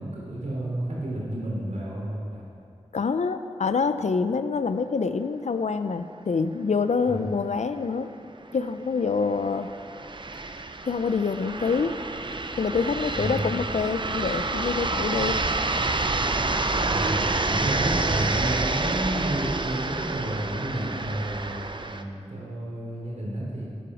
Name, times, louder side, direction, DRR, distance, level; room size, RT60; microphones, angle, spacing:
voice 1, 0.0-2.4 7.1-7.2 13.1-13.5 16.8-17.2 17.5-23.6, right 1 dB, 80° right, -5 dB, 3.7 m, -31 dB
voice 2, 2.9-8.1 8.5-9.7 10.9-11.9 12.6-15.4, left 5 dB, 75° left, 10 dB, 0.5 m, -26 dB
sound 1, 7.9-8.0 8.3-8.4 9.2-22.0, right 3 dB, 45° right, 0.6 m, -28 dB
10.5 x 10.0 x 6.3 m, 2.5 s
wide cardioid pair, 70°, 12 cm